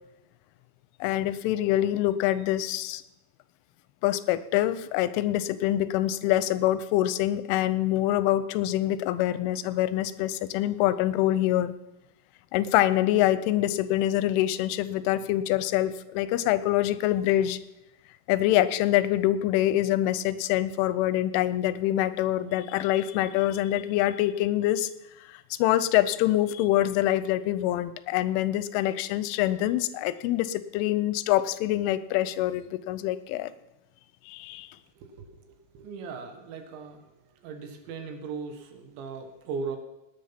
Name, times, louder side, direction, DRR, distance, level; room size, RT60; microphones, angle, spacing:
voice 1, 1.0-3.0 4.0-11.7 12.5-17.6 18.3-24.9 25.5-33.5 34.3-34.7, left 13 dB, 85° left, 15 dB, 3.2 m, -25 dB
voice 2, 35.0-37.1 37.4-39.8, right 5 dB, 75° right, 6 dB, 3.7 m, -38 dB
18.5 x 9.9 x 5.9 m, 0.93 s
omnidirectional pair, 5.5 m